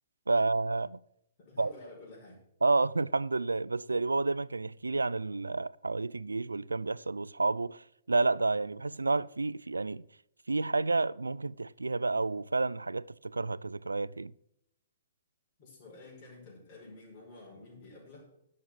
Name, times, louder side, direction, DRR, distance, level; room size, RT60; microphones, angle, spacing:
voice 1, 0.3-1.0 1.6-1.7 2.6-10.0 10.5-14.3, right 3 dB, 80° right, 0.3 m, -30 dB
voice 2, 1.4-2.4 15.6-18.4, left 2 dB, 40° left, 5.5 m, -51 dB
12.0 x 6.6 x 6.1 m
figure-of-eight pair, 115°, 0 cm